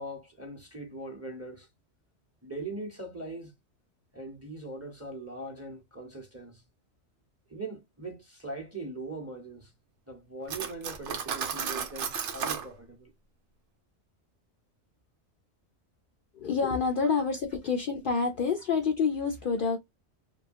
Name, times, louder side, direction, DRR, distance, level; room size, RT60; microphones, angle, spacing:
voice 1, 0.0-1.7 2.4-3.5 4.1-6.6 7.5-9.7 10.1-13.1, right 2 dB, 15° right, 0.8 m, -41 dB
Cutlery silverware, 10.5-12.7, right 7 dB, 90° right, 1.0 m, -33 dB
voice 2, 16.3-19.8, left 5 dB, 60° left, 0.6 m, -28 dB
3.0 x 2.3 x 2.5 m
omnidirectional pair, 1.2 m